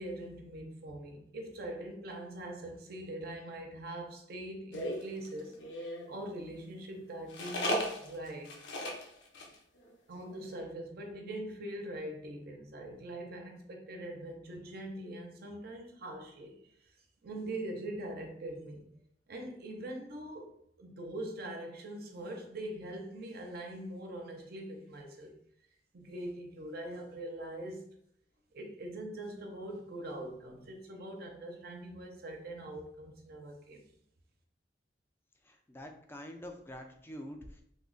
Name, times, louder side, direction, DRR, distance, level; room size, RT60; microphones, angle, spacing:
voice 1, 0.0-8.6 10.1-16.7 17.2-18.9 19.3-20.5 20.8-25.3 25.9-27.8 28.5-33.8, right 1 dB, 55° right, 3 dB, 0.6 m, -42 dB
sound 1, 4.7-6.1 7.3-9.0 9.3-9.5 9.8-9.9 10.2-10.5, left 1 dB, 80° left, 0.6 m, -36 dB
voice 2, 35.4-37.6, equal, 15° left, 4 dB, 0.3 m, -46 dB
3.2 x 2.1 x 3.7 m, 0.69 s
head